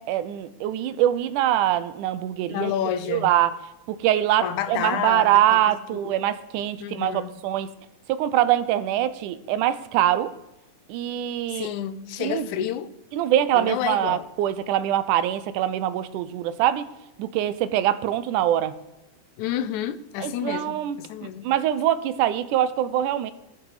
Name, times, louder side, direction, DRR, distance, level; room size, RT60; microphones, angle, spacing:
voice 1, 0.0-2.7 3.1-3.6 3.9-7.7 8.1-10.3 10.9-11.7 12.2-12.5 13.1-16.8 17.2-18.8 20.2-21.0 21.4-23.3, right 12 dB, 85° right, 2.2 m, -23 dB
voice 2, 2.5-3.4 4.4-6.2 6.8-7.3 11.5-12.9 13.5-14.3 19.4-21.5, left 10 dB, 75° left, 2.0 m, -30 dB
17.5 x 6.1 x 4.9 m
omnidirectional pair, 3.5 m